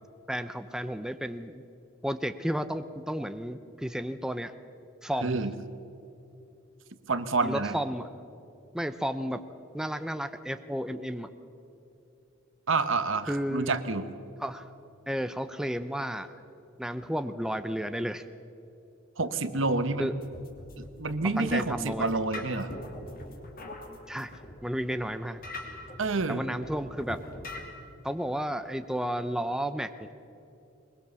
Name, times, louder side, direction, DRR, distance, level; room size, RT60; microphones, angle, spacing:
voice 1, 0.3-1.6 2.0-4.5 5.0-5.4 7.4-8.1 8.7-9.4 9.7-11.3 13.3-13.7 14.4-14.7 15.1-16.3 16.8-18.3 20.0-20.2 21.4-22.1 24.1-25.4 26.3-27.2 28.0-30.1, equal, 5° right, 10 dB, 0.6 m, -32 dB
voice 2, 5.2-5.5 7.1-7.7 12.7-14.1 19.2-20.1 20.8-22.7 26.0-26.4, right 3 dB, 65° right, 11 dB, 1.1 m, -28 dB
sound 1, 20.1-27.6, left 1 dB, 45° left, 2.8 m, -44 dB
22.0 x 21.5 x 7.0 m, 2.8 s
head